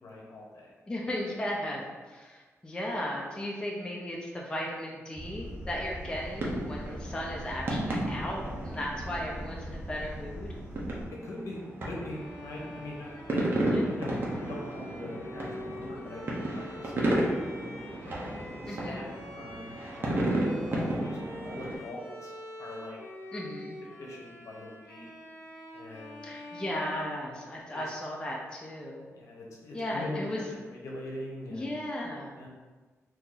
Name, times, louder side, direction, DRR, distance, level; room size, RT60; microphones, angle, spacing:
voice 1, 0.0-0.7 11.1-13.5 13.8-17.4 18.0-20.2 20.7-23.0 24.0-25.1 25.7-26.3 27.4-27.8 29.1-31.8 32.3-32.5, left 1 dB, 75° left, -3 dB, 0.8 m, -42 dB
voice 2, 0.9-10.5 13.7-13.9 18.7-19.0 23.3-23.8 26.2-29.1 29.7-30.4 31.5-32.3, left 1 dB, 15° left, -2 dB, 0.4 m, -36 dB
sound 1, 5.1-11.1, equal, 10° right, 1.1 m, -41 dB
sound 2, 6.1-21.7, right 1 dB, 40° right, 0.6 m, -33 dB
Bowed string instrument, 12.0-27.9, left 1 dB, 45° left, 0.8 m, -46 dB
2.8 x 2.6 x 3.8 m, 1.3 s
wide cardioid pair, 155°, 5 cm